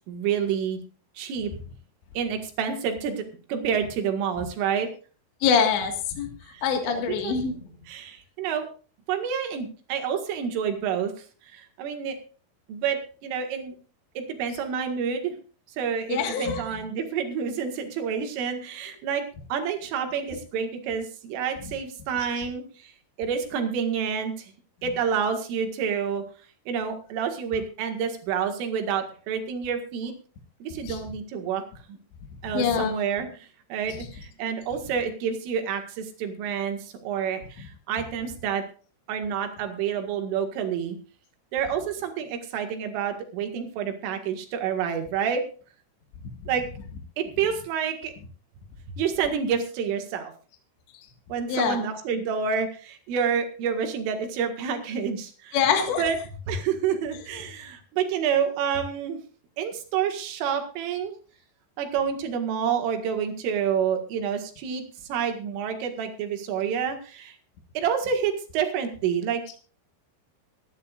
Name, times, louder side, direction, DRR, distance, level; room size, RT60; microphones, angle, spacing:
voice 1, 0.1-0.8 1.2-1.5 2.2-3.2 3.5-4.9 6.5-7.4 7.9-8.7 9.1-11.1 11.4-12.2 12.7-13.8 14.2-15.3 15.8-19.2 19.5-22.9 23.2-24.5 24.8-26.2 26.7-30.1 30.6-31.6 31.9-32.0 32.4-38.6 39.1-41.0 41.5-45.4 46.5-46.7 47.2-48.1 48.9-50.3 51.3-55.6 56.0-56.2 56.5-59.2 59.6-61.2 61.8-64.8 65.1-67.4 67.8-69.6, right 7 dB, 90° right, 5 dB, 4.4 m, -28 dB
voice 2, 5.4-6.3 6.6-7.6 16.1-16.8 30.8-31.0 32.5-33.0 46.2-46.3 51.5-51.8 55.5-56.0, left 6 dB, 70° left, 4 dB, 4.0 m, -24 dB
24.0 x 10.5 x 2.5 m, 0.38 s
omnidirectional pair, 5.6 m